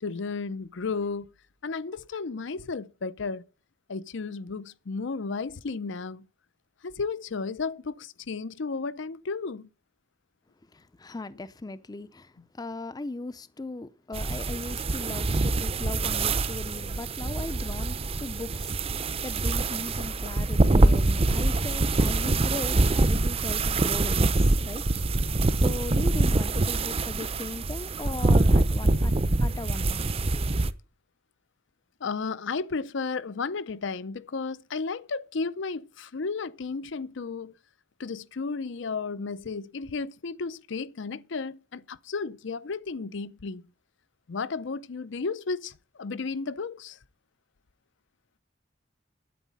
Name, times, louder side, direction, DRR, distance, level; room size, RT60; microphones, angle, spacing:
voice 1, 0.0-1.3 1.6-3.4 3.9-6.2 6.8-9.7 32.0-37.6 38.0-43.6 44.3-47.0, left 4 dB, 65° left, 0.6 m, -33 dB
voice 2, 10.7-24.8 25.6-29.1 29.4-30.1, left 2 dB, 20° left, 0.5 m, -38 dB
sound 1, 14.1-30.7, right 2 dB, 30° right, 0.6 m, -25 dB
9.4 x 8.1 x 8.3 m
head